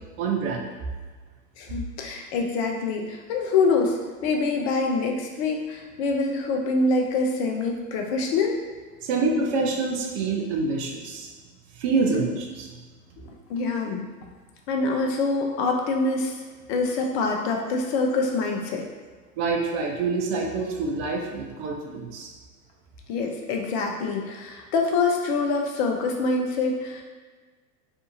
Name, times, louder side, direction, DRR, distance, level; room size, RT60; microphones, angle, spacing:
voice 1, 0.2-0.7 9.0-11.3 11.8-12.7 19.4-22.3, right 4 dB, 45° right, 1 dB, 0.5 m, -26 dB
voice 2, 1.6-8.6 13.5-14.1 14.7-16.4 16.7-18.8 23.1-27.0, left 3 dB, 45° left, 2 dB, 0.5 m, -25 dB
2.6 x 2.4 x 2.7 m, 1.4 s
hypercardioid pair, 95°, 45 cm